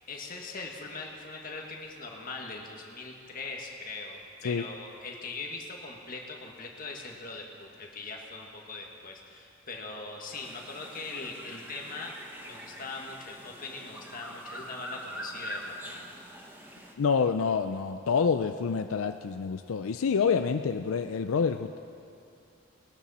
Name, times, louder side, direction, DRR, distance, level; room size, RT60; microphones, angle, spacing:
voice 1, 0.1-12.1 12.4-16.0, left 3 dB, 45° left, 0 dB, 1.6 m, -41 dB
sound 1, 10.3-16.9, right 1 dB, 10° right, 1.0 m, -44 dB
voice 2, 17.0-21.9, left 6 dB, 85° left, 8 dB, 0.4 m, -27 dB
20.5 x 12.0 x 4.2 m, 2.6 s
head